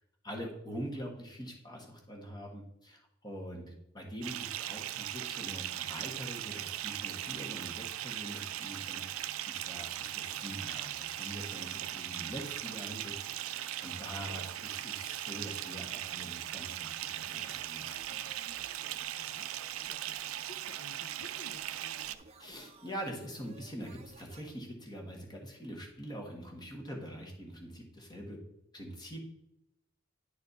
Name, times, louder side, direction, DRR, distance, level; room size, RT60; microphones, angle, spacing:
voice 1, 0.2-18.3 22.4-28.4 28.7-29.2, equal, 20° left, 1 dB, 1.4 m, -44 dB
Bathtub (filling or washing) / Fill (with liquid), 4.2-22.2, right 12 dB, 90° right, 0.4 m, -39 dB
sound 1, 17.3-24.5, right 4 dB, 30° right, 0.6 m, -57 dB
voice 2, 19.2-22.0, left 3 dB, 70° left, 8 dB, 0.5 m, -55 dB
9.7 x 4.3 x 4.0 m, 0.86 s
head